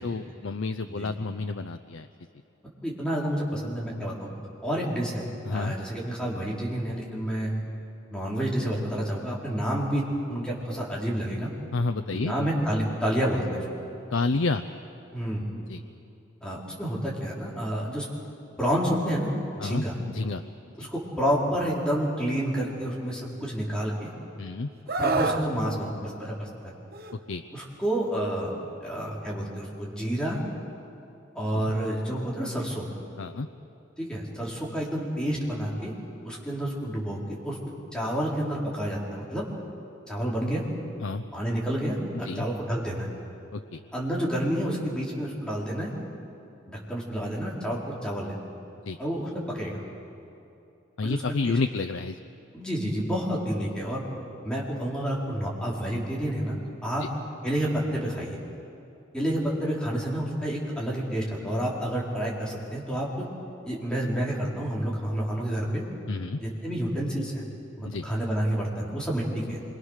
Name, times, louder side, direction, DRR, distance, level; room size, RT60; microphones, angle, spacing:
voice 1, 0.0-2.1 5.5-5.7 11.7-12.3 14.1-14.6 15.7-15.8 19.6-19.8 20.1-20.4 20.8-20.9 24.4-24.7 27.3-27.4 31.5-31.7 33.2-33.5 41.0-41.2 42.2-42.4 43.7-43.8 48.9-49.0 51.0-52.2 66.1-66.4 67.9-68.0, left 3 dB, 90° left, 8 dB, 0.6 m, -29 dB
voice 2, 2.8-4.3 4.6-5.2 5.5-7.5 8.1-11.5 12.1-13.8 15.1-15.4 16.4-18.1 18.6-19.3 19.5-19.9 20.8-24.1 25.0-26.7 27.5-30.4 31.3-32.9 34.0-35.9 36.2-37.6 37.9-39.5 40.1-40.6 41.3-43.1 43.9-45.9 46.6-48.4 49.0-49.8 51.0-51.6 52.5-54.0 54.4-56.5 56.8-57.0 57.4-58.4 59.1-63.3 63.6-65.8 66.4-67.4 67.8-69.6, equal, 5° left, -5 dB, 4.3 m, -29 dB
Screaming, 24.9-25.4 26.9-27.1, right 3 dB, 55° right, 1.3 m, -26 dB
26.5 x 23.5 x 6.5 m, 2.7 s
head